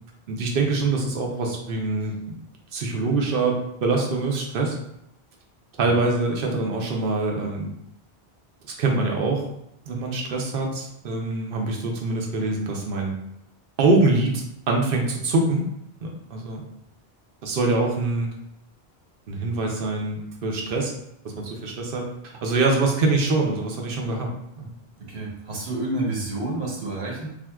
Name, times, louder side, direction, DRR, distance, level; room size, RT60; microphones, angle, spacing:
voice 1, 0.3-2.4 2.7-4.8 5.8-7.7 8.6-9.4 9.9-13.1 13.8-14.3 14.7-15.7 16.0-16.6 17.4-18.3 19.3-20.9 21.2-22.1 22.4-24.3 24.6-24.7, right 3 dB, 65° right, 1 dB, 0.8 m, -24 dB
voice 2, 25.1-27.3, right 2 dB, 85° right, -4 dB, 1.2 m, -29 dB
3.6 x 2.5 x 2.3 m, 0.79 s
omnidirectional pair, 1.1 m